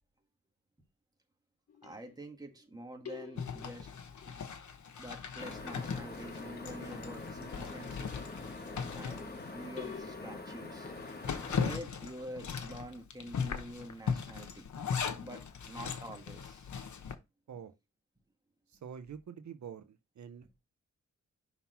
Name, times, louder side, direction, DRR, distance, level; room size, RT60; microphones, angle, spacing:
sound 1, 1.7-2.6 3.0-5.0 5.3-8.3 9.8-11.4, left 7 dB, 55° left, 1.0 m, -51 dB
voice 1, 1.8-3.9 4.2-4.4 5.0-8.1 8.9-10.9 11.5-14.7 15.2-16.7, right 1 dB, 15° right, 1.5 m, -47 dB
Zipper (clothing), 3.3-10.0 10.4-10.5 10.9-17.1, left 6 dB, 80° left, 1.0 m, -39 dB
sound 2, 5.4-11.8, left 2 dB, 35° left, 1.2 m, -45 dB
voice 2, 18.7-20.5, right 7 dB, 75° right, 0.7 m, -46 dB
5.7 x 3.9 x 5.6 m
wide cardioid pair, 145°, 29 cm